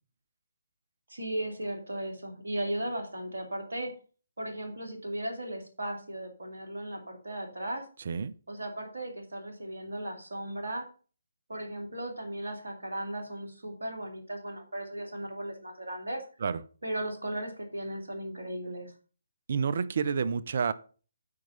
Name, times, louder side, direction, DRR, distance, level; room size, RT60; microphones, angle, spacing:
voice 1, 1.1-3.9 4.4-7.9 8.5-10.9 11.5-16.2 16.8-18.9, right 1 dB, 70° right, 3 dB, 2.4 m, -36 dB
voice 2, 19.5-20.7, right 6 dB, 50° right, 17 dB, 0.5 m, -29 dB
8.5 x 4.7 x 5.4 m, 0.38 s
figure-of-eight pair, 140°, 0 cm